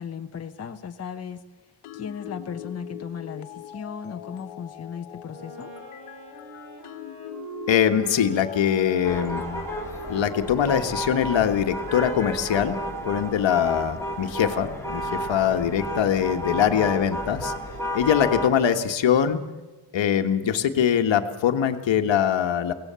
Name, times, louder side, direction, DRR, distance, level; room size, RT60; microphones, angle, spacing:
voice 1, 0.0-1.4 1.9-5.7, left 7 dB, 30° left, 4 dB, 1.1 m, -36 dB
sound 1, 1.8-11.2, left 11 dB, 90° left, 1.4 m, -42 dB
Wind instrument woodwind instrument, 5.3-13.6, right 3 dB, 45° right, 7.1 m, -42 dB
voice 2, 7.7-9.4 10.1-12.8 13.0-17.5 17.9-19.4 19.9-22.7, left 9 dB, 60° left, 7 dB, 1.7 m, -22 dB
sound 2, 9.0-18.5, equal, 5° left, 3.6 m, -32 dB
24.0 x 18.0 x 7.0 m, 1.2 s
cardioid pair, 105°, 50 cm